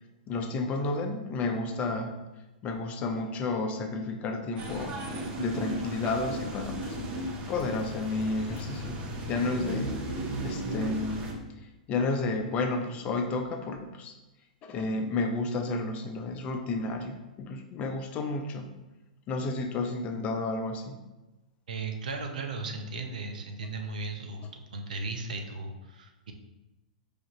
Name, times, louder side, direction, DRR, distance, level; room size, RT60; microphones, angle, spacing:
voice 1, 0.3-2.1 2.6-5.0 5.4-9.0 9.3-11.2 11.9-14.1 14.6-18.7 19.3-21.0, left 3 dB, 30° left, 5 dB, 0.4 m, -31 dB
sound 1, 4.6-11.3, right 1 dB, 30° right, 0.7 m, -35 dB
voice 2, 21.7-26.3, right 3 dB, 80° right, 4 dB, 0.6 m, -36 dB
4.8 x 2.5 x 2.9 m, 1.1 s
hypercardioid pair, 120°, 4 cm